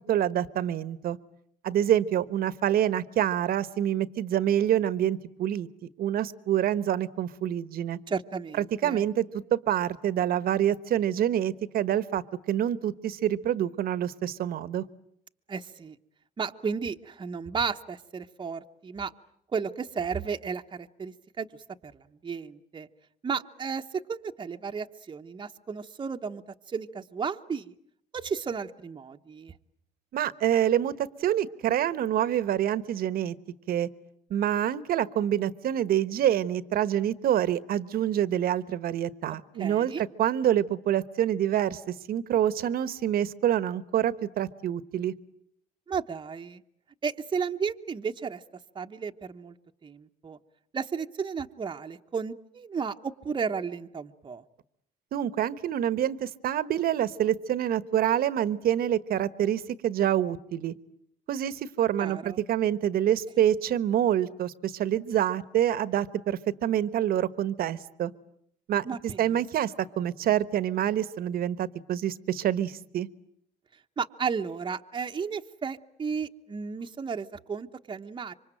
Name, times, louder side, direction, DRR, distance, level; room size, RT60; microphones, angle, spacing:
voice 1, 0.1-1.2 1.6-5.7 6.0-8.0 8.8-14.8 30.1-33.3 33.7-33.9 34.3-45.1 55.1-60.7 61.3-68.1 68.7-68.8 69.2-73.1, right 11 dB, 60° right, 16 dB, 1.2 m, -26 dB
voice 2, 8.1-9.0 15.5-16.0 16.4-19.1 19.5-21.5 21.8-21.9 22.2-22.9 23.2-23.8 24.1-26.4 26.7-27.7 28.1-29.5 39.6-40.0 45.9-46.6 47.0-48.4 48.7-49.5 49.8-50.4 50.7-54.4 62.0-62.4 68.8-69.4 74.0-78.3, right 6 dB, 25° right, 5 dB, 1.1 m, -33 dB
26.5 x 25.0 x 9.0 m, 0.71 s
cardioid pair, 110°, 17 cm